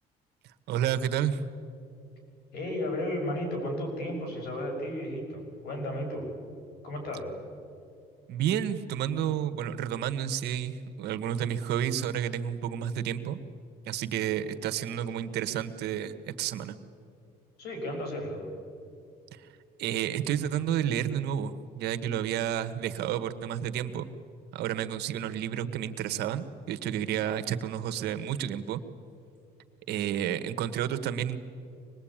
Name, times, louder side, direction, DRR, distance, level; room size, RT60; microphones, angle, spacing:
voice 1, 0.7-1.4 8.3-13.4 13.9-16.8 19.3-19.5 19.8-24.1 24.5-28.8 29.9-31.4, right 10 dB, 80° right, 9 dB, 1.3 m, -31 dB
voice 2, 2.5-6.3 6.8-7.3 17.6-18.5, left 1 dB, 70° left, 2 dB, 6.5 m, -33 dB
25.0 x 20.5 x 8.9 m, 2.5 s
cardioid pair, 110°, 17 cm